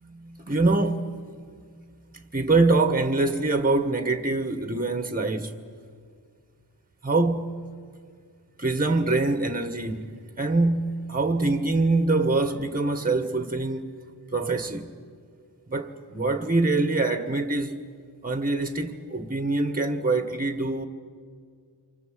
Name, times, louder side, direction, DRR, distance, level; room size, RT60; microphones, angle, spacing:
voice 1, 0.1-1.0 2.3-5.5 7.0-7.5 8.6-10.1 10.4-10.8 11.1-13.9 14.3-14.9 15.7-17.8 18.2-20.9, right 3 dB, 20° right, 1.8 m, -24 dB
28.5 x 25.0 x 7.9 m
wide cardioid pair, 80°, 42 cm